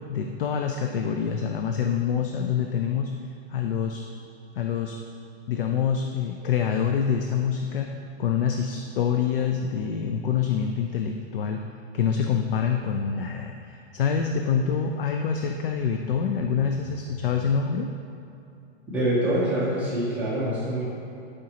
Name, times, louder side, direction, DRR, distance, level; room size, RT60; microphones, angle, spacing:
voice 1, 0.1-3.1 3.5-4.0 4.6-4.9 5.5-7.9 8.2-11.6 11.9-17.9, left 7 dB, 55° left, 4 dB, 0.5 m, -26 dB
voice 2, 18.9-20.8, right 1 dB, 5° right, -9 dB, 0.5 m, -25 dB
12.0 x 5.1 x 2.9 m, 2.7 s
hypercardioid pair, 165°, 34 cm